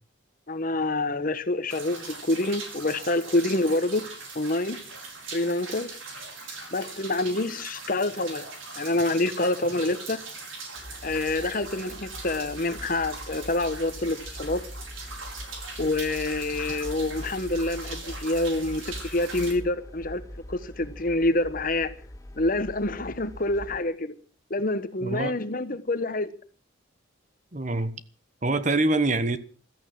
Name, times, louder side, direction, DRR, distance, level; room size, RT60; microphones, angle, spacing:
voice 1, 0.5-4.0 4.3-4.8 5.3-5.9 6.7-8.5 8.8-10.2 11.0-14.6 15.8-20.2 20.5-21.9 22.3-24.1 24.5-26.3, left 2 dB, 45° left, 1.2 m, -27 dB
sound 1, 1.7-19.5, right 3 dB, 75° right, 5.3 m, -40 dB
sound 2, 10.8-23.8, left 1 dB, 15° left, 0.7 m, -42 dB
voice 2, 25.0-25.4 27.5-27.9 28.4-29.4, right 2 dB, 35° right, 1.1 m, -25 dB
15.0 x 14.0 x 6.4 m
head